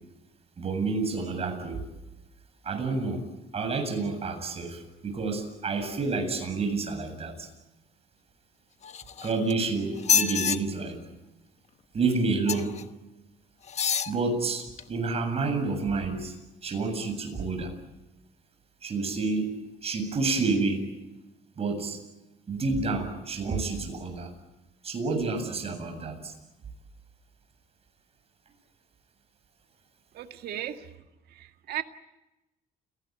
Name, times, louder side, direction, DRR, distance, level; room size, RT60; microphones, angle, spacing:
voice 1, 0.6-1.8 2.6-3.2 3.5-7.5 9.2-11.0 11.9-12.7 14.1-16.3 16.6-17.7 18.8-19.5 19.8-20.8 21.6-22.0 22.5-24.3 24.8-26.3, right 3 dB, 35° right, 6 dB, 7.8 m, -29 dB
sound 1, 8.8-9.5 10.0-10.6 12.5-12.8 13.7-14.1 14.8-14.9, left 7 dB, 40° left, 1.2 m, -26 dB
voice 2, 30.1-30.9 31.3-31.8, right 11 dB, 70° right, 6 dB, 2.0 m, -36 dB
29.0 x 18.5 x 9.3 m, 0.99 s
cardioid pair, 110°, 17 cm